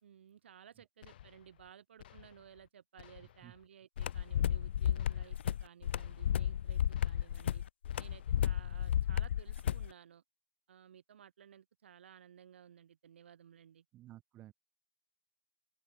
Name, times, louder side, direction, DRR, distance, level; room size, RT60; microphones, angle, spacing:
voice 1, 0.0-7.6 8.0-10.2 10.7-13.8, right 9 dB, 90° right, 0.9 m, -57 dB
sound 1, 1.0-1.7 2.0-2.7 3.0-3.7 4.0-4.6 4.9-5.6 5.9-6.6 6.9-7.6 7.9-8.6, left 12 dB, 55° left, 5.5 m, -58 dB
sound 2, 4.0-9.9, left 10 dB, 80° left, 0.3 m, -33 dB
voice 2, 13.9-14.5, right 14 dB, 20° right, 0.5 m, -53 dB
open air
hypercardioid pair, 165°, 6 cm